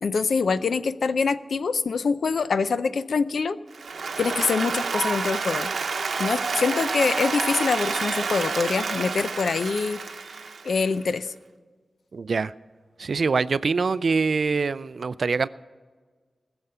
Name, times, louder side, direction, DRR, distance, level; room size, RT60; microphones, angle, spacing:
voice 1, 0.0-3.6 4.2-5.7 6.2-10.0 10.6-11.3, left 5 dB, 85° left, 13 dB, 0.5 m, -25 dB
Applause, 3.7-10.9, right 4 dB, 90° right, 0.9 m, -29 dB
voice 2, 12.1-12.5 13.0-15.5, right 4 dB, 65° right, 17 dB, 0.3 m, -24 dB
19.5 x 7.0 x 5.5 m, 1.5 s
wide cardioid pair, 115°, 0 cm